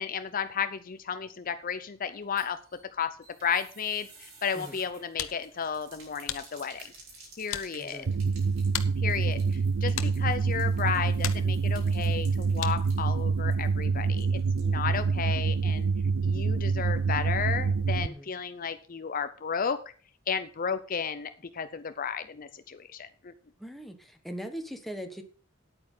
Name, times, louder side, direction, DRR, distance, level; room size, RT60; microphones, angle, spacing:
voice 1, 0.0-2.6 2.9-3.2 3.4-6.9 7.4-8.1 9.0-15.9 16.2-19.8 20.3-23.3, left 6 dB, 45° left, 11 dB, 0.6 m, -33 dB
sound 1, 2.1-15.1 15.4-15.5 15.8-15.9, right 3 dB, 70° right, 5.3 m, -54 dB
sound 2, 4.8-13.0, left 10 dB, 75° left, 1.0 m, -41 dB
voice 2, 7.8-8.2 18.0-18.3 23.6-25.2, equal, ahead, 5 dB, 1.3 m, -40 dB
sound 3, 8.1-18.1, right 4 dB, 90° right, 0.5 m, -27 dB
9.7 x 8.9 x 5.6 m, 0.40 s
head